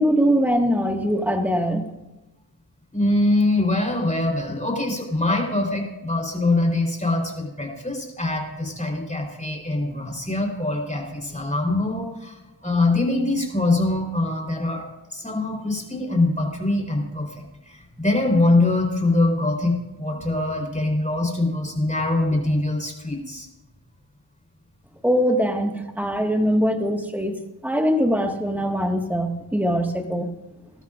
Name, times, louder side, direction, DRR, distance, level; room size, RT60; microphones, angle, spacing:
voice 1, 0.0-1.8 25.0-30.3, equal, 5° right, 3 dB, 1.6 m, -22 dB
voice 2, 2.9-12.3 12.6-17.3 17.7-23.5, left 2 dB, 15° left, 0 dB, 3.7 m, -23 dB
20.0 x 12.5 x 2.5 m, 0.98 s
cardioid pair, 55°, 44 cm